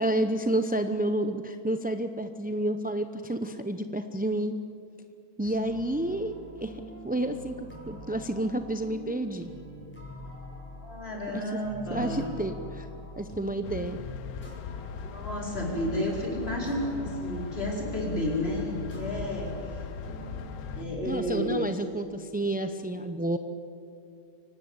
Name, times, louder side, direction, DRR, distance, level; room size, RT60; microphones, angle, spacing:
voice 1, 0.0-4.6 5.4-6.3 6.6-9.5 11.3-11.4 11.9-12.9 13.2-14.0 21.0-23.4, right 1 dB, 10° right, 8 dB, 0.4 m, -30 dB
sound 1, 5.4-21.1, left 1 dB, 5° left, 6.0 m, -44 dB
voice 2, 10.8-12.3 15.0-19.8 20.7-21.6, left 1 dB, 45° left, -2 dB, 5.1 m, -31 dB
sound 2, 13.6-20.9, left 8 dB, 90° left, 1.2 m, -40 dB
25.0 x 18.0 x 8.0 m, 2.6 s
omnidirectional pair, 1.5 m